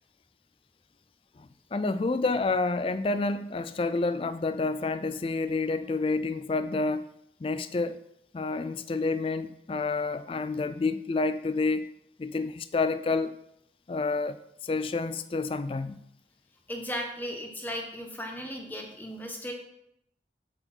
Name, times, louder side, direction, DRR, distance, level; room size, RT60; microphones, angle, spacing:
voice 1, 1.4-7.0 7.4-8.0 8.3-11.9 12.2-13.3 13.9-16.0, left 3 dB, 30° left, 0.3 m, -29 dB
voice 2, 16.7-19.5, equal, 10° left, 1.2 m, -36 dB
7.8 x 7.7 x 4.5 m
head